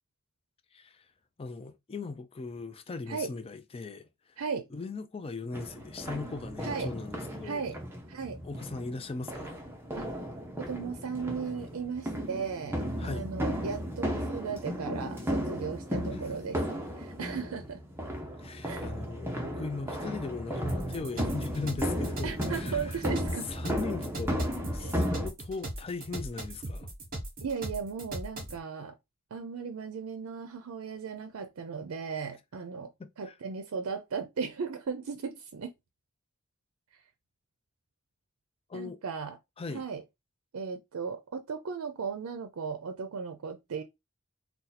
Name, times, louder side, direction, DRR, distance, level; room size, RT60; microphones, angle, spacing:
voice 1, 0.7-1.1 1.4-4.4 4.7-7.7 8.4-9.6 13.0-13.2 16.1-16.2 18.4-23.0 23.5-24.5 24.7-26.9 33.0-33.3 38.7-39.0 39.6-39.8, left 3 dB, 25° left, 0.4 m, -39 dB
voice 2, 4.4-4.7 6.6-6.9 7.4-7.8 8.1-8.4 10.0-10.1 10.6-16.6 17.0-17.8 18.6-18.8 22.2-23.5 24.8-25.0 27.4-29.0 29.3-32.9 33.2-35.7 38.7-39.4 39.7-40.0 40.5-43.8, right 5 dB, 85° right, 0.5 m, -36 dB
sound 1, 5.5-25.3, equal, 10° right, 0.7 m, -35 dB
sound 2, 20.7-28.6, right 1 dB, 45° right, 1.2 m, -39 dB
2.7 x 2.3 x 4.0 m
head